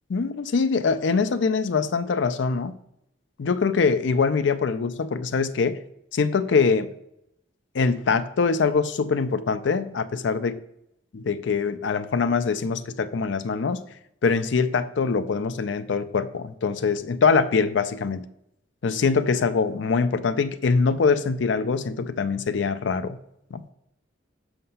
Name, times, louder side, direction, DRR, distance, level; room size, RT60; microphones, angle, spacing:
voice 1, 0.1-2.7 3.4-5.8 6.1-6.9 7.7-10.5 11.1-13.8 14.2-18.2 18.8-23.2 23.5-23.7, left 5 dB, 70° left, 12 dB, 0.4 m, -23 dB
5.8 x 5.5 x 5.5 m, 0.79 s
head